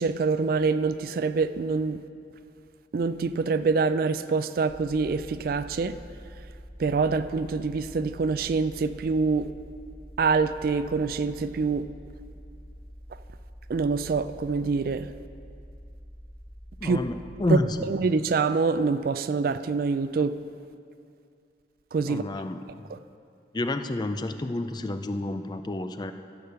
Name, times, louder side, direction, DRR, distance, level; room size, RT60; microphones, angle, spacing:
voice 1, 0.0-2.0 2.9-5.9 6.8-9.5 10.2-11.8 13.7-15.1 16.8-17.0 17.5-17.6 17.9-20.4 21.9-22.2 22.9-23.0, right 4 dB, 50° right, 13 dB, 0.3 m, -25 dB
sound 1, 4.7-17.6, equal, 40° left, 2.4 m, -46 dB
voice 2, 16.8-17.8 22.0-22.6 23.5-26.1, left 2 dB, 25° left, 8 dB, 0.4 m, -29 dB
14.5 x 5.1 x 6.7 m, 2.4 s
head